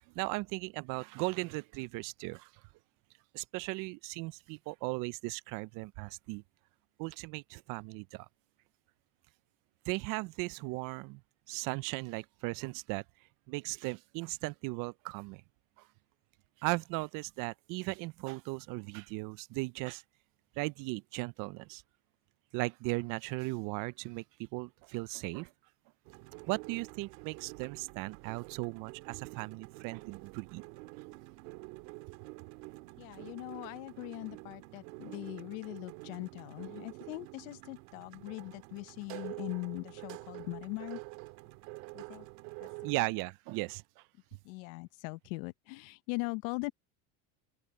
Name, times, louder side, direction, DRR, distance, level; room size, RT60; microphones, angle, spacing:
voice 1, 0.1-2.5 3.3-6.4 7.0-8.3 9.9-11.2 11.5-13.0 13.5-15.4 15.8-15.9 16.6-20.0 20.6-21.8 22.5-25.5 26.5-30.6 42.8-44.0, right 24 dB, 55° right, 0.6 m, -37 dB
sound 1, 26.0-43.0, right 26 dB, 80° right, 2.1 m, -48 dB
voice 2, 33.0-41.0 41.9-42.3 42.6-43.1 44.4-46.7, left 26 dB, 80° left, 0.8 m, -41 dB
open air
supercardioid pair, 130°, 39 cm